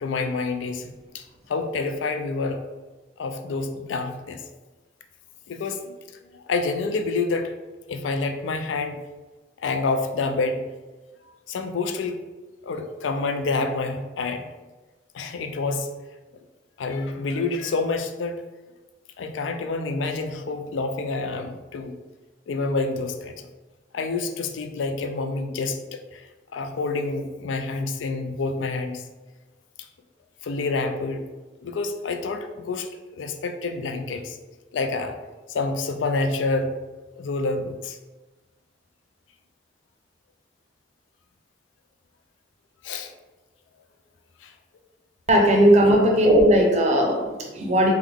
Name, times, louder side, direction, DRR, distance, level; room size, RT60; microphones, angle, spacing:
voice 1, 0.0-2.6 3.2-4.4 5.5-6.0 6.3-7.6 7.9-9.0 9.6-10.6 11.5-12.2 12.6-14.4 15.1-15.9 16.8-18.4 19.2-21.9 22.5-23.5 23.9-26.2 26.5-29.1 30.4-31.2 31.6-32.9 33.1-34.4 34.7-35.2 35.5-36.7 37.2-38.0 42.8-43.1 44.4-44.5 45.8-46.0, left 3 dB, 90° left, 6 dB, 0.4 m, -28 dB
voice 2, 45.3-47.9, equal, 35° right, 2 dB, 0.5 m, -17 dB
3.5 x 2.2 x 3.4 m, 1.2 s
head